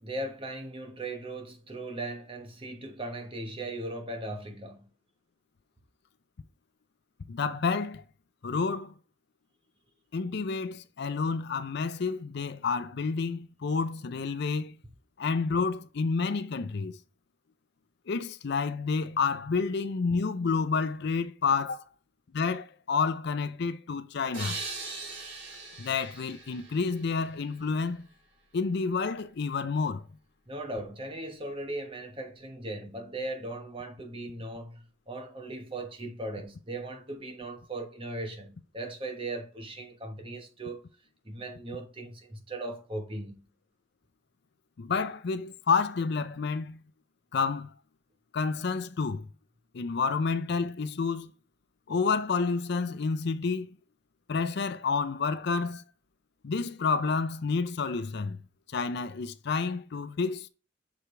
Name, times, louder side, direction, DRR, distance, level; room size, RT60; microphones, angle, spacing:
voice 1, 0.0-4.9 30.5-40.8 41.2-43.4, right 2 dB, 30° right, 1.2 m, -38 dB
voice 2, 7.3-8.0 8.4-8.9 10.1-14.8 15.2-17.0 18.1-21.8 22.3-24.6 25.8-28.1 28.5-30.1 44.8-46.8 47.3-47.7 48.3-49.3 49.7-51.3 51.9-53.7 54.3-55.8 56.4-58.4 58.7-60.5, left 4 dB, 60° left, 0.5 m, -29 dB
sound 1, 24.3-27.8, right 3 dB, 70° right, 3.8 m, -41 dB
6.1 x 4.9 x 3.3 m
head